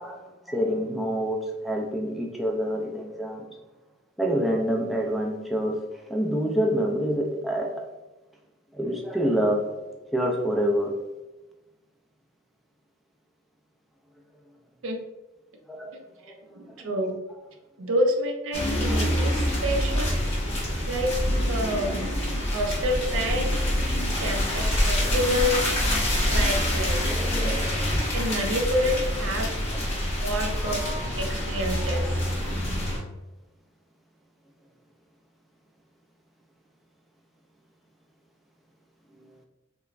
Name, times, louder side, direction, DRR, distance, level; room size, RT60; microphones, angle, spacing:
voice 1, 0.0-3.5 4.2-7.9 8.7-9.8 10.1-11.0 15.7-15.9 16.2-16.4 16.7-16.9 25.0-25.1 27.0-27.9 30.6-31.1 32.4-32.6, equal, ahead, -1 dB, 0.3 m, -27 dB
voice 2, 16.5-17.1 17.8-20.1 20.9-21.1 21.5-22.1 22.5-23.5 24.2-25.5 26.3-27.0 27.3-27.5 27.8-29.5 30.2-32.2, equal, 75° right, 2 dB, 0.5 m, -28 dB
sound 1, 18.5-33.0, left 1 dB, 30° left, 0.8 m, -26 dB
3.0 x 2.2 x 2.4 m, 1.1 s
head